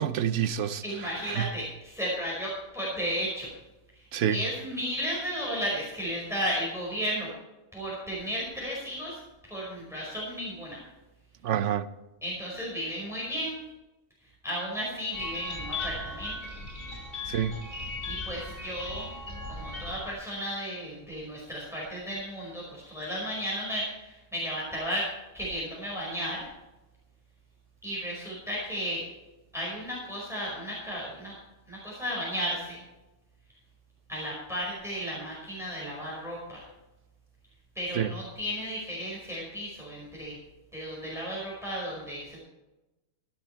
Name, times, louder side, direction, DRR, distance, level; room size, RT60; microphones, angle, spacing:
voice 1, 0.0-0.8 1.2-1.5 4.1-4.4 11.4-11.9 17.3-17.5 37.9-38.1, right 9 dB, 65° right, 1.0 m, -27 dB
voice 2, 0.8-3.5 4.3-7.3 7.7-9.2 9.5-10.8 12.2-13.5 14.4-16.3 18.0-19.1 19.5-25.1 25.3-26.5 27.8-29.0 29.5-31.3 31.7-32.8 34.1-36.6 37.7-40.4 40.7-42.4, equal, ahead, 5.1 m, -34 dB
sound 1, 15.1-20.1, left 2 dB, 45° left, 3.1 m, -37 dB
15.5 x 12.0 x 4.5 m
omnidirectional pair, 1.4 m